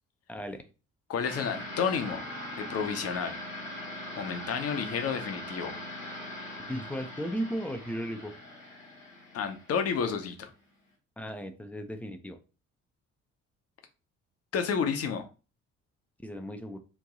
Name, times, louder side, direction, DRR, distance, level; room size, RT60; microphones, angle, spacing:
voice 1, 0.3-0.7 6.7-8.3 11.2-12.4 16.2-16.8, equal, 5° left, 5 dB, 0.4 m, -36 dB
voice 2, 1.1-2.2 2.6-3.4 4.2-5.8 9.3-10.5 14.5-15.2, left 6 dB, 40° left, 6 dB, 0.7 m, -30 dB
sound 1, 1.2-10.3, left 1 dB, 90° left, 0.7 m, -41 dB
3.0 x 2.6 x 3.7 m, 0.33 s
figure-of-eight pair, 45°, 39 cm